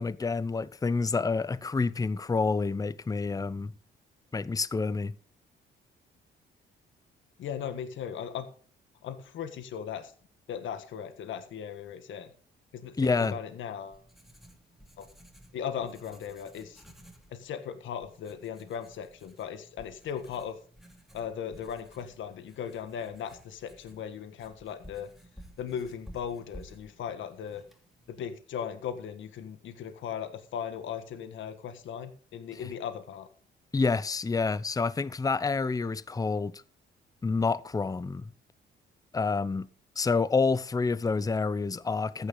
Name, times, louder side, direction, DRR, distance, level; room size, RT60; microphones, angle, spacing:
voice 1, 0.0-3.7 4.3-5.1 13.0-13.4 32.6-32.7 33.7-36.6 37.2-38.3 39.1-39.7 40.0-42.3, left 4 dB, 20° left, 0.6 m, -28 dB
voice 2, 7.4-8.5 9.0-10.1 10.5-12.3 12.7-14.0 15.0-15.1 15.5-16.8 17.3-20.6 21.1-25.1 25.6-27.6 28.1-33.3, left 8 dB, 75° left, 1.5 m, -38 dB
Writing, 13.5-28.3, equal, ahead, 2.7 m, -54 dB
14.5 x 10.0 x 4.0 m
cardioid pair, 90°, 20 cm